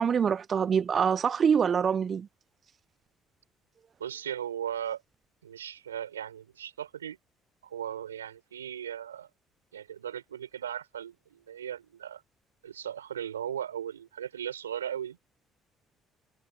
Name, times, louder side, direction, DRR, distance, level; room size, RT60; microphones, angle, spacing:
voice 1, 0.0-2.3, right 7 dB, 45° right, 0.8 m, -25 dB
voice 2, 4.0-5.0 5.4-7.2 7.6-9.3 9.7-12.2 12.6-15.2, right 9 dB, 90° right, 4.9 m, -37 dB
hypercardioid pair, 55°, 0 cm